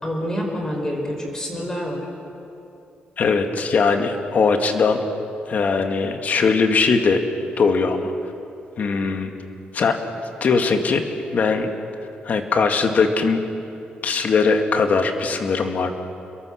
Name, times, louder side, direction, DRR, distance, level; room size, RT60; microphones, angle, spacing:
voice 1, 0.0-2.1, equal, 20° left, 1 dB, 5.0 m, -27 dB
voice 2, 3.2-5.0 5.5-7.2 7.6-8.1 8.8-9.3 9.7-10.0 10.4-11.0 11.3-11.7 12.2-13.4 14.0-15.9, left 4 dB, 50° left, 5 dB, 2.1 m, -20 dB
29.5 x 22.5 x 6.6 m, 2.8 s
wide cardioid pair, 140°, 4 cm